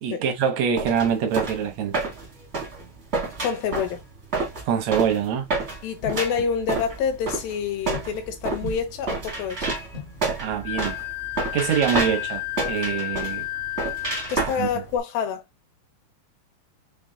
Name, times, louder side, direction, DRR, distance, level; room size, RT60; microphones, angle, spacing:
voice 1, 0.0-2.0 4.7-5.5 10.4-11.0 11.5-13.4 14.5-14.7, right 7 dB, 80° right, 1.5 m, -24 dB
sound 1, 0.8-15.0, right 3 dB, 65° right, 0.6 m, -30 dB
voice 2, 3.4-4.0 5.8-9.6 14.3-15.4, left 7 dB, 85° left, 2.7 m, -27 dB
sound 2, 6.0-12.1, left 5 dB, 50° left, 0.7 m, -45 dB
Wind instrument woodwind instrument, 10.6-14.3, left 21 dB, 70° left, 2.5 m, -31 dB
5.7 x 2.2 x 3.7 m
omnidirectional pair, 4.0 m